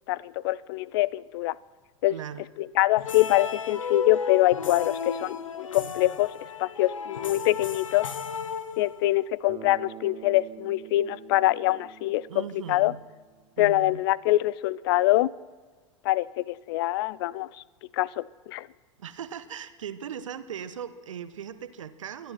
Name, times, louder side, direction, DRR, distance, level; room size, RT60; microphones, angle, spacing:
voice 1, 0.1-1.5 2.0-2.1 2.8-6.3 6.6-8.1 8.8-12.4 12.7-12.9 13.6-15.3 16.1-17.5 18.0-18.7, left 17 dB, 50° left, 0.4 m, -24 dB
voice 2, 2.1-2.5 12.3-13.0 13.6-14.0 19.0-22.3, right 8 dB, 70° right, 0.9 m, -38 dB
sound 1, 3.0-9.2, left 6 dB, 80° left, 0.9 m, -34 dB
Bass guitar, 9.5-13.5, right 12 dB, 30° right, 0.8 m, -47 dB
24.5 x 10.5 x 4.4 m
figure-of-eight pair, 95°, 17 cm